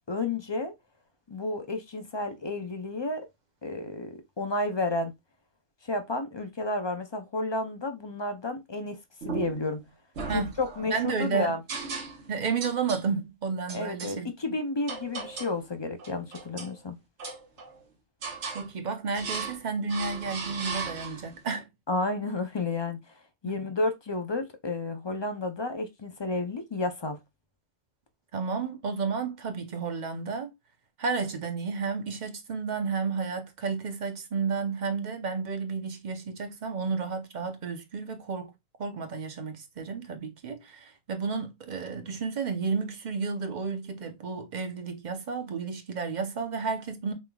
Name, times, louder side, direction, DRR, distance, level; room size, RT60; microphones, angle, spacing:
voice 1, 0.1-0.7 1.3-3.3 3.6-5.1 5.8-9.0 9.2-9.8 10.3-11.6 13.7-17.0 21.9-23.0 23.4-27.2, left 2 dB, 35° left, 0.5 m, -31 dB
sound 1, 9.2-9.7 10.2-11.0 11.7-12.3 12.6-13.1 13.7-14.2 14.9-15.6 16.0-16.8 17.2-17.8 18.2-18.7 19.2-19.6 19.9-21.4, right 4 dB, 75° right, 1.4 m, -37 dB
voice 2, 10.9-11.5 12.3-14.3 18.5-21.7 23.4-23.5 28.3-30.5 31.0-38.5 38.8-47.1, right 5 dB, 45° right, 0.8 m, -32 dB
5.5 x 3.2 x 2.3 m
omnidirectional pair, 1.2 m